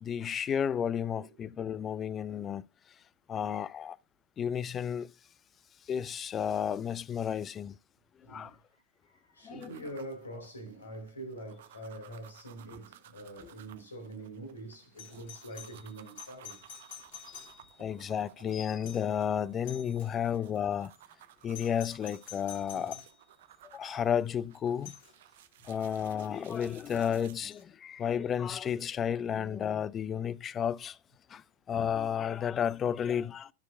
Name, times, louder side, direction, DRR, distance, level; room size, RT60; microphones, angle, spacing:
voice 1, 0.0-2.6 3.3-4.0 4.4-5.1 5.9-7.8 8.3-8.6 9.4-9.7 17.3-17.5 17.8-20.9 21.4-23.0 23.6-25.0 25.6-31.0 31.3-33.5, left 8 dB, 25° left, 0.3 m, -32 dB
voice 2, 1.2-1.6 8.2-16.6 22.7-23.0 25.6-25.7, right 1 dB, 75° left, 2.7 m, -45 dB
sound 1, 9.6-27.4, right 12 dB, 55° right, 0.7 m, -57 dB
Doorbell, 15.0-17.9 18.8-19.2 19.6-20.2 21.5-23.2 24.9-25.1 27.5-27.6, left 9 dB, 55° left, 1.8 m, -49 dB
12.5 x 6.2 x 2.3 m
figure-of-eight pair, 90°, 0 cm